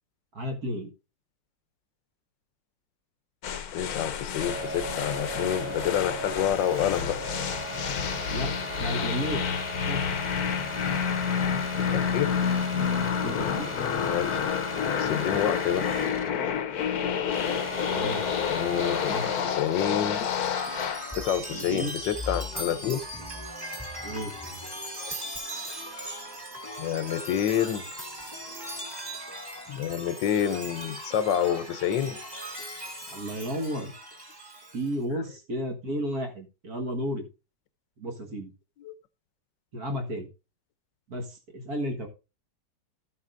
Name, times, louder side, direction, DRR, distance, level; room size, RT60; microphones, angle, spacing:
voice 1, 0.3-0.9 8.3-8.5 8.8-9.5 9.9-10.2 13.2-13.7 17.9-18.3 19.1-19.3 21.5-21.9 24.0-24.3 33.1-33.9 34.7-37.3 38.0-38.5 39.7-40.3 41.1-42.1, equal, 55° right, 2.0 m, -32 dB
sound 1, 3.4-21.1, left 7 dB, 65° left, 1.2 m, -29 dB
voice 2, 3.7-7.2 11.9-12.4 14.0-14.3 14.9-15.9 18.5-20.3 21.0-23.0 25.0-25.2 26.8-27.8 29.7-32.2 38.8-38.9, left 10 dB, 80° left, 1.5 m, -28 dB
sound 2, 4.4-16.4 16.7-19.6, left 1 dB, 20° left, 1.1 m, -36 dB
Chime, 19.1-34.9, equal, 15° right, 2.0 m, -39 dB
13.5 x 8.3 x 2.6 m
omnidirectional pair, 1.9 m